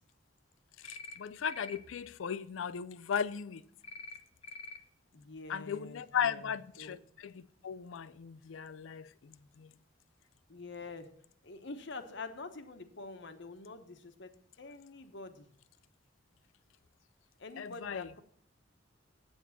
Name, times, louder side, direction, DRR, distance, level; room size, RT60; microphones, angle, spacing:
voice 1, 0.8-3.6 5.5-9.7 17.6-18.1, left 7 dB, 85° left, 0.4 m, -37 dB
sound 1, 0.8-1.2 1.4-1.8 3.8-4.2 4.4-4.8, left 3 dB, 30° left, 0.7 m, -46 dB
voice 2, 5.1-7.0 10.5-11.1 11.4-15.5 17.4-18.2, left 3 dB, 65° left, 1.1 m, -46 dB
8.4 x 7.2 x 7.1 m
head